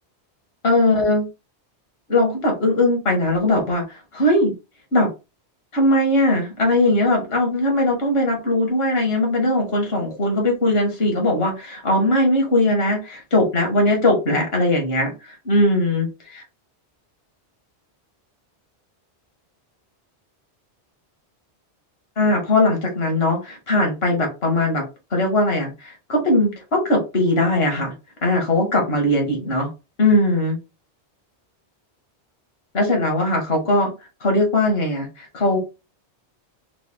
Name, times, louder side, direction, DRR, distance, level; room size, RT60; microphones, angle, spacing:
voice 1, 0.6-1.3 2.1-4.5 4.9-5.1 5.7-16.4 22.2-24.8 25.1-27.9 28.2-29.7 30.0-30.6 32.7-33.9 34.2-35.6, left 1 dB, 65° left, 1 dB, 1.6 m, -20 dB
3.9 x 2.3 x 3.4 m, 0.28 s
omnidirectional pair, 1.1 m